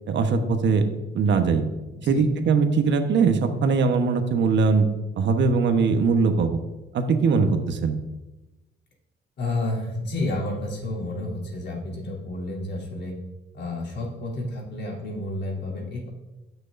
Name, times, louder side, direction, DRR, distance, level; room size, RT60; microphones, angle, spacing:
voice 1, 0.1-0.8 1.1-1.6 2.0-4.9 5.2-6.6 6.9-8.0, right 4 dB, 65° right, 6 dB, 1.2 m, -21 dB
voice 2, 1.9-2.2 9.4-13.1 13.5-16.1, left 2 dB, 60° left, -3 dB, 3.2 m, -30 dB
17.0 x 6.3 x 2.6 m, 1.0 s
cardioid pair, 90°, 20 cm